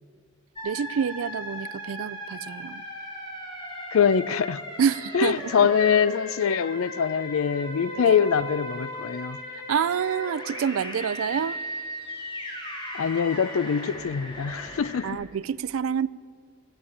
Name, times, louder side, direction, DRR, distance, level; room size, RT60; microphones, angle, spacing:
sound 1, 0.6-15.1, equal, 20° left, 2.3 m, -37 dB
voice 1, 0.6-2.8 4.8-5.7 8.0-8.2 9.5-11.6 15.0-16.1, right 7 dB, 80° right, 0.4 m, -27 dB
voice 2, 3.9-4.6 5.1-9.4 12.9-15.1, left 7 dB, 80° left, 0.4 m, -23 dB
14.0 x 10.0 x 8.5 m
head